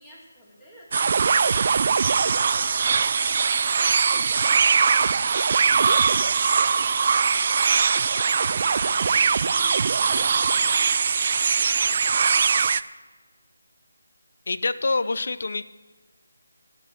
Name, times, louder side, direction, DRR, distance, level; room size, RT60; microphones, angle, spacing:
voice 1, 0.0-12.6, equal, 15° left, -6 dB, 2.9 m, -49 dB
sound 1, 0.9-12.8, right 5 dB, 40° right, 0.3 m, -21 dB
voice 2, 14.5-15.6, left 3 dB, 55° left, 14 dB, 0.6 m, -25 dB
10.5 x 7.9 x 8.8 m, 1.4 s
figure-of-eight pair, 155°, 0 cm